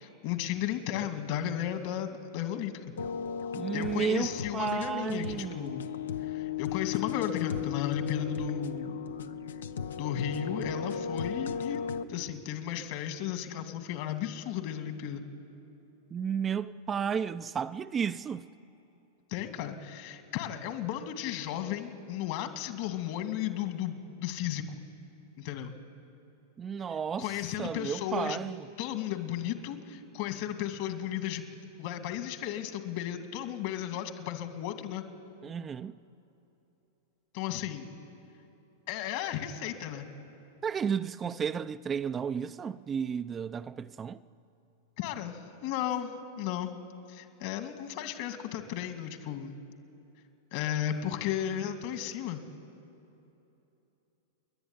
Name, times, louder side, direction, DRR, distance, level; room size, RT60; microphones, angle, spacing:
voice 1, 0.2-2.9 3.7-5.9 6.2-9.0 9.9-11.8 12.1-15.2 19.3-24.8 25.4-25.7 27.2-28.5 28.8-31.4 31.8-35.0 37.3-37.9 38.9-40.1 45.0-46.7 47.1-49.6 50.5-52.4, left 10 dB, 60° left, 2.4 m, -34 dB
sound 1, 3.0-12.0, left 7 dB, 85° left, 0.7 m, -36 dB
voice 2, 3.5-5.8 16.1-18.5 26.6-27.3 27.6-28.6 35.4-36.0 40.6-44.2, right 7 dB, 25° right, 0.5 m, -33 dB
29.5 x 11.0 x 9.9 m
hypercardioid pair, 115°, 0 cm